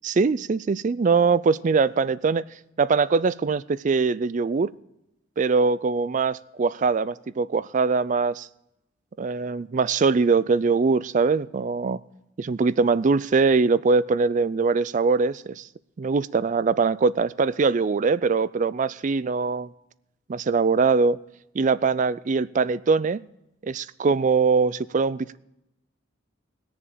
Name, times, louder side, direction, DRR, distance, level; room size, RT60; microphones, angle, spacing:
voice 1, 0.0-2.4 2.8-4.7 5.4-8.5 9.2-12.0 12.4-15.7 16.0-19.7 20.3-21.2 21.5-23.2 23.6-25.4, right 4 dB, 40° right, 18 dB, 0.3 m, -22 dB
20.5 x 7.0 x 5.0 m, 0.86 s
head